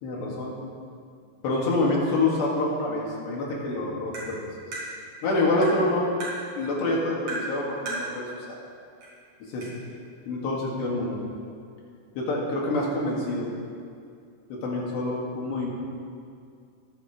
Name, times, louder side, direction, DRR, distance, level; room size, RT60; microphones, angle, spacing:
voice 1, 0.0-0.6 1.4-4.4 5.2-6.2 6.6-8.6 9.5-9.7 10.3-11.2 12.2-13.5 14.5-15.7, left 2 dB, 70° left, -4 dB, 4.2 m, -26 dB
Tap, 4.1-4.3 4.7-4.9 5.6-5.8 6.2-6.4 7.3-7.5 7.9-8.1 9.0-9.1 9.6-9.7, right 2 dB, 55° right, 5.9 m, -33 dB
23.5 x 11.0 x 3.3 m, 2.4 s
omnidirectional pair, 5.3 m